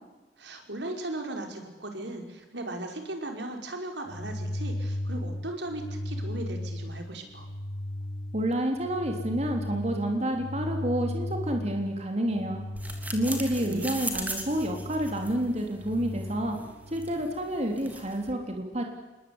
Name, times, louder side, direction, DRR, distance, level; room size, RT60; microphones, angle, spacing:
voice 1, 0.4-7.5 13.6-13.9, right 1 dB, 80° right, 4 dB, 5.2 m, -37 dB
sound 1, 4.0-17.1, left 1 dB, 55° left, 2.2 m, -36 dB
voice 2, 8.3-12.6 13.1-16.6 16.9-18.8, right 1 dB, 40° right, 3 dB, 3.5 m, -29 dB
sound 2, 12.8-18.3, right 2 dB, 10° right, 3.3 m, -40 dB
28.0 x 20.5 x 9.8 m, 1.1 s
head